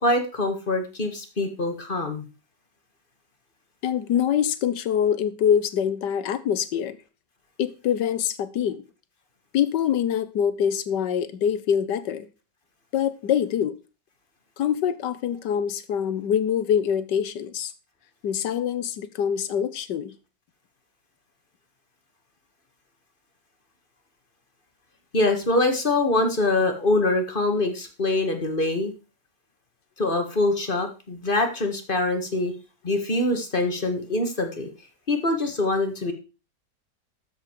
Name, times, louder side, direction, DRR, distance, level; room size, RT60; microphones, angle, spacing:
voice 1, 0.0-2.3 25.1-28.9 30.0-32.5 32.8-34.7 35.1-36.1, left 2 dB, 30° left, 1.9 m, -24 dB
voice 2, 3.8-7.0 7.6-8.8 9.5-12.3 12.9-13.8 14.6-17.7 18.2-20.1, left 8 dB, 85° left, 1.6 m, -24 dB
13.0 x 7.5 x 4.7 m
omnidirectional pair, 1.8 m